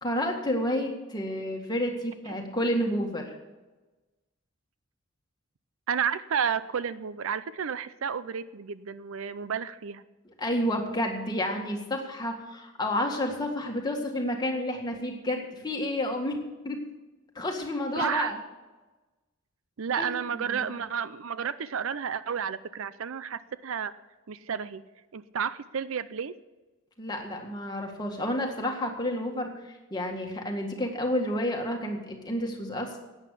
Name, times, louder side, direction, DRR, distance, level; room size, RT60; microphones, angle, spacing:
voice 1, 0.0-3.4 10.4-16.4 16.6-16.8 17.4-18.4 20.0-20.1 20.3-20.8 27.0-32.9, left 1 dB, 20° left, 1 dB, 1.9 m, -30 dB
voice 2, 5.9-10.0 18.0-18.3 19.8-23.9 24.3-24.8 25.1-26.3, right 7 dB, 65° right, 15 dB, 0.5 m, -31 dB
11.5 x 9.0 x 8.3 m, 1.2 s
head